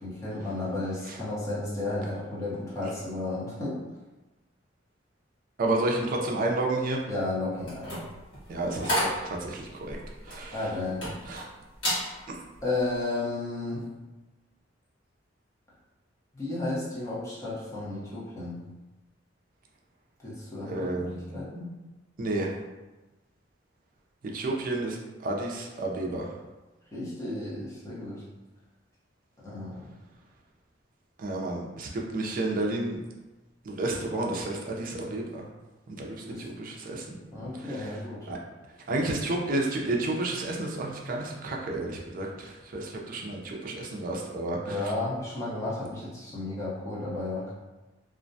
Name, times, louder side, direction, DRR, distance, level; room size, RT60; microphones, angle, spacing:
voice 1, 0.0-3.8 7.1-8.0 10.5-11.0 12.6-13.9 16.3-18.6 20.2-21.7 26.9-28.2 29.4-29.9 36.3-36.5 37.3-38.3 44.6-47.5, left 2 dB, 15° left, -8 dB, 0.8 m, -33 dB
voice 2, 5.6-7.0 8.5-10.0 10.3-10.6 11.3-11.5 12.3-12.4 20.6-21.1 22.2-22.5 24.3-26.3 31.2-33.0 33.7-35.4 35.9-37.0 37.4-37.9 38.3-38.4 38.9-44.8, right 2 dB, 50° right, 0 dB, 0.4 m, -31 dB
sound 1, 7.6-11.4 11.7-12.1 12.5-12.8, equal, 85° left, 1.2 m, -32 dB
2.4 x 2.1 x 2.6 m, 1.1 s
head